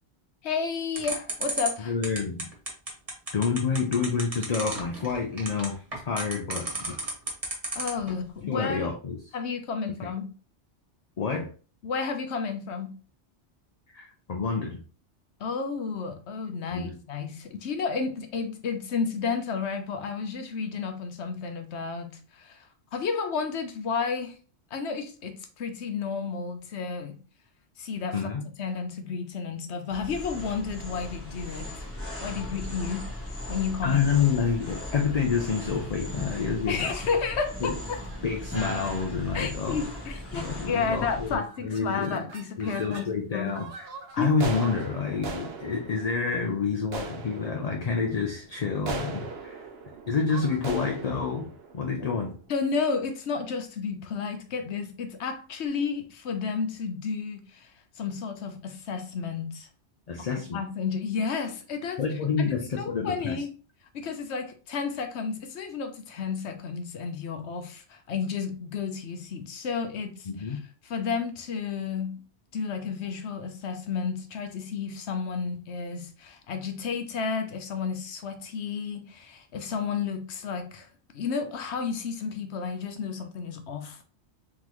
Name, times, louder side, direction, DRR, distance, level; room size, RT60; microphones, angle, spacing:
voice 1, 0.4-1.9 7.8-8.9 9.3-10.3 11.8-13.0 15.4-24.4 24.7-27.2 27.8-28.3 28.6-31.9 32.2-33.0 33.5-34.0 36.7-38.0 39.3-43.5 44.2-44.3 52.0-52.1 52.5-59.7 60.5-62.0 62.5-63.5 63.9-72.2 72.5-80.9 81.1-84.0, left 5 dB, 70° left, 1.0 m, -32 dB
sound 1, 0.9-8.1, right 2 dB, 35° right, 1.4 m, -32 dB
voice 2, 1.9-2.5 3.3-7.0 8.5-9.2 10.0-10.1 11.2-11.5 13.9-14.8 16.7-17.0 28.1-28.5 33.8-37.0 37.6-37.8 38.2-39.8 40.3-42.2 42.6-43.9 44.1-49.7 50.1-52.4 60.1-60.6 62.0-63.4 70.3-70.6, left 5 dB, 45° left, 0.6 m, -28 dB
sound 2, 29.9-41.3, left 1 dB, 15° left, 1.1 m, -37 dB
sound 3, 37.0-37.4 37.9-38.2 38.9-39.1 39.4-39.5 39.8-40.2 40.8-41.1 41.4-43.1 43.5-52.6, right 4 dB, 65° right, 0.9 m, -40 dB
3.8 x 3.7 x 3.0 m
omnidirectional pair, 1.2 m